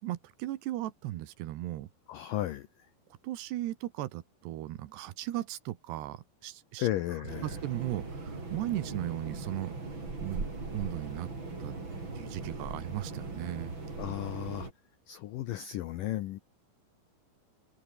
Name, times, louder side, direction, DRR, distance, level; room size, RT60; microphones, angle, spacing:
voice 1, 0.0-1.9 3.2-6.9 7.4-9.8 10.2-10.5 10.7-11.3 11.6-11.7 12.2-13.7, right 15 dB, 75° right, 3.2 m, -36 dB
voice 2, 2.1-2.7 6.8-7.5 14.0-14.7 15.1-16.4, left 14 dB, 80° left, 1.9 m, -34 dB
sound 1, 7.3-14.7, right 3 dB, 25° right, 5.9 m, -39 dB
omnidirectional pair, 5.2 m